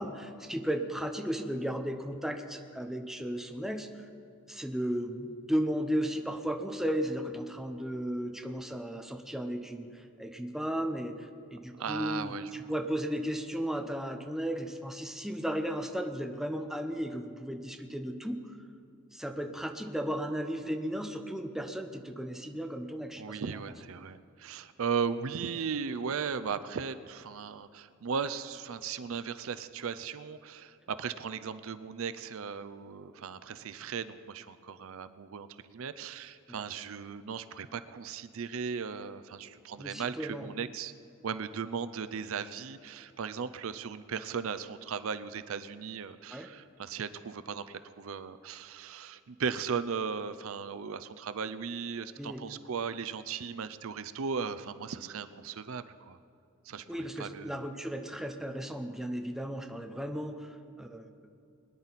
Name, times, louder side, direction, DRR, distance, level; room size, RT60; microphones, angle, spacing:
voice 1, 0.0-3.9 4.5-18.4 19.1-23.4 39.8-40.5 46.3-46.5 52.2-52.6 56.9-61.1, equal, ahead, 4 dB, 0.8 m, -35 dB
voice 2, 11.8-12.5 23.2-40.9 41.2-56.2 56.7-57.6, right 6 dB, 70° right, 12 dB, 0.5 m, -37 dB
22.0 x 10.5 x 4.1 m, 2.6 s
head